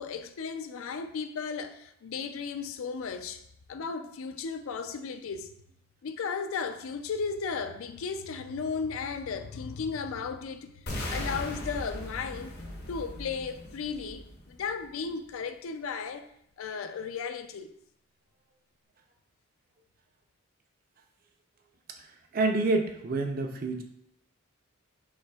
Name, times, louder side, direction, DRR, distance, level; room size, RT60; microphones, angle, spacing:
voice 1, 0.0-3.4 3.7-5.5 6.0-10.7 11.1-12.6 12.9-16.3 16.6-17.7, left 5 dB, 70° left, 0.4 m, -35 dB
sound 1, 10.9-14.9, left 1 dB, 45° left, 0.7 m, -38 dB
voice 2, 22.0-23.8, right 3 dB, 40° right, 0.4 m, -28 dB
5.7 x 3.3 x 2.3 m
head